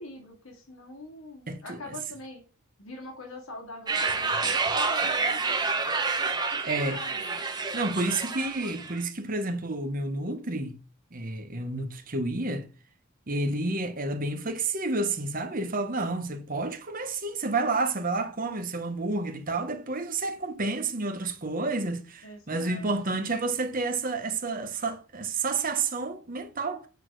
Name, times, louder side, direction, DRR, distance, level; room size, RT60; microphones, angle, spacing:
voice 1, 0.0-2.4 2.8-6.0 6.5-7.5 22.2-23.0, left 2 dB, 80° left, 2.6 m, -44 dB
voice 2, 1.5-1.9 6.6-7.0 7.7-10.7 11.1-12.6 13.3-26.9, right 3 dB, 40° right, 1.2 m, -30 dB
sound 1, 3.9-9.0, right 4 dB, 20° right, 1.1 m, -28 dB
8.8 x 4.2 x 6.3 m
head